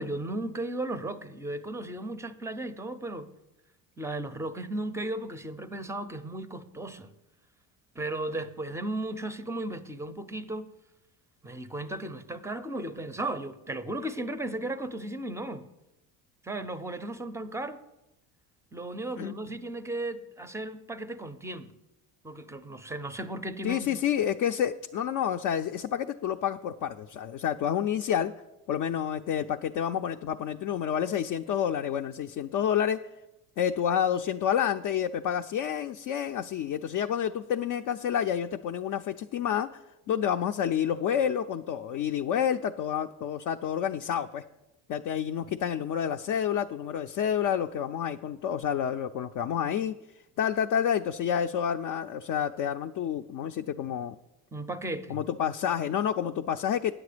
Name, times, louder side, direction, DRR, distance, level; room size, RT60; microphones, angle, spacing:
voice 1, 0.0-3.3 4.0-7.1 7.9-10.7 11.4-15.7 16.4-17.8 18.7-21.8 22.2-24.0 54.5-55.2, right 1 dB, 5° right, 12 dB, 0.5 m, -35 dB
voice 2, 23.6-28.3 28.7-33.0 33.6-39.8 40.1-44.4 44.9-49.9 50.4-54.2 55.1-56.9, left 9 dB, 50° left, 5 dB, 0.4 m, -29 dB
9.6 x 7.6 x 5.0 m, 0.96 s
supercardioid pair, 100°, 41 cm